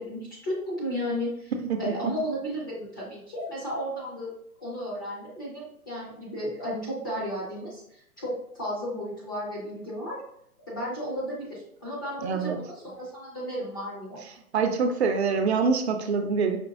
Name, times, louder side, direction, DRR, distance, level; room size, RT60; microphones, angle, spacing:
voice 1, 0.0-1.5 1.8-4.3 4.6-10.2 10.7-14.2, equal, 15° left, -6 dB, 0.4 m, -33 dB
voice 2, 1.6-1.9 12.2-12.6 14.5-16.6, right 5 dB, 50° right, 5 dB, 0.5 m, -25 dB
5.1 x 3.0 x 2.3 m, 0.74 s
hypercardioid pair, 140°, 44 cm